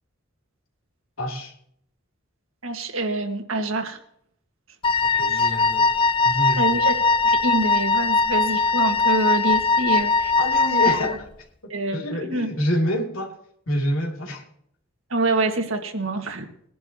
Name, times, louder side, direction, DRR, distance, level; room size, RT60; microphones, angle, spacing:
voice 1, 1.2-1.5 5.1-6.8 10.4-11.3 11.6-13.4 13.7-14.4, equal, 85° left, 0 dB, 2.7 m, -27 dB
voice 2, 2.6-4.0 5.3-5.4 6.6-10.3 11.7-12.5 15.1-16.5, right 2 dB, 75° right, 5 dB, 1.7 m, -26 dB
Wind instrument woodwind instrument, 4.8-11.2, left 3 dB, 25° left, 0.4 m, -20 dB
21.0 x 11.0 x 2.9 m, 0.68 s
head